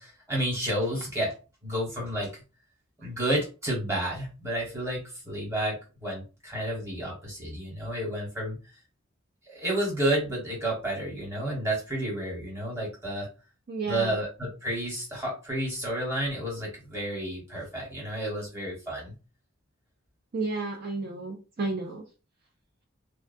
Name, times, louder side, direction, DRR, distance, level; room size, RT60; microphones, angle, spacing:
voice 1, 0.0-1.3 1.6-2.3 3.0-8.6 9.5-13.3 13.9-19.1, right 1 dB, 15° right, -3 dB, 1.2 m, -31 dB
voice 2, 13.7-14.2 20.3-22.0, right 3 dB, 50° right, 0 dB, 0.4 m, -32 dB
2.3 x 2.2 x 2.5 m, 0.32 s
head